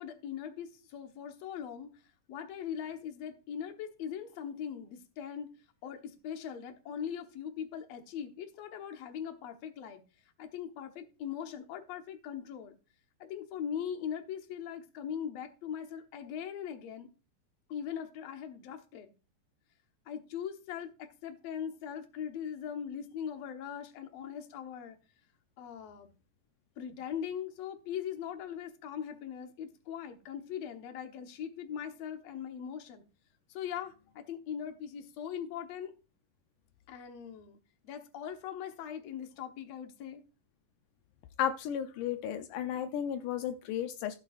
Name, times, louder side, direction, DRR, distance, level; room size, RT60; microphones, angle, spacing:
voice 1, 0.0-2.0 2.3-5.5 5.8-10.0 10.4-12.8 13.2-17.1 17.7-19.1 20.1-25.0 25.6-26.1 26.8-33.0 33.5-35.9 36.9-37.6 37.8-40.2, left 8 dB, 60° left, 2.2 m, -40 dB
voice 2, 41.4-44.2, left 10 dB, 80° left, 2.2 m, -33 dB
15.0 x 8.7 x 2.5 m
omnidirectional pair, 3.6 m